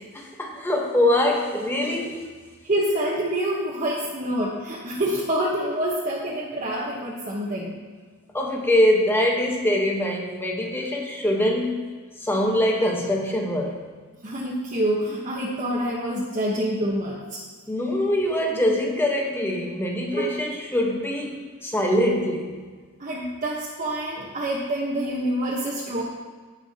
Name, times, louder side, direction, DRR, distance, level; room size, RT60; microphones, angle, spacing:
voice 1, 0.1-2.3 8.3-11.9 12.2-13.8 17.7-22.6, left 1 dB, 10° left, 0 dB, 1.0 m, -23 dB
voice 2, 2.6-7.8 14.2-17.4 20.2-20.3 23.0-26.0, right 1 dB, 35° right, -6 dB, 1.0 m, -27 dB
16.0 x 5.5 x 2.8 m, 1.5 s
head